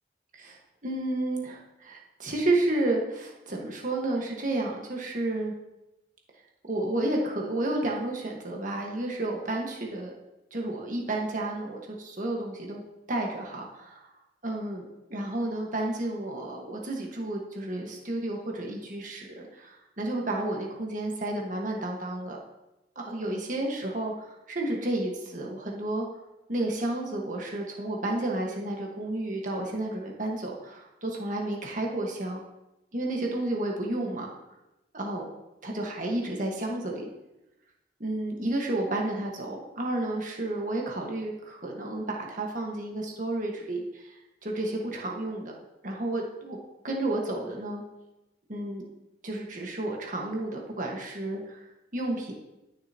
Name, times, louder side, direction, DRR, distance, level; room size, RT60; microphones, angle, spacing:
voice 1, 0.8-5.5 6.7-10.1 10.5-12.8 13.1-14.1 14.4-22.4 22.9-26.0 26.5-32.4 32.9-34.3 34.9-35.3 35.6-37.1 38.0-44.2 44.4-45.5 45.8-46.6 46.8-47.8 48.5-48.8 49.2-52.3, right 2 dB, 50° right, 0 dB, 1.6 m, -31 dB
12.0 x 6.7 x 3.0 m, 0.96 s
head